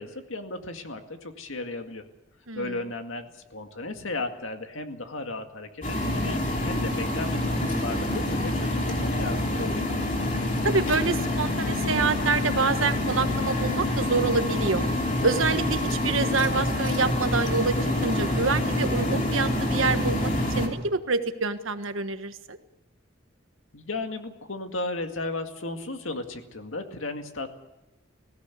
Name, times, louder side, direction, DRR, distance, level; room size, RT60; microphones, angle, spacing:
voice 1, 0.0-2.0 2.5-9.8 23.7-27.5, left 2 dB, 85° left, 5 dB, 2.1 m, -35 dB
sound 1, 5.8-20.7, left 1 dB, 40° left, 3.0 m, -27 dB
voice 2, 10.6-14.8 15.2-22.6, right 4 dB, 90° right, 9 dB, 1.4 m, -27 dB
19.5 x 16.5 x 8.4 m, 0.99 s
head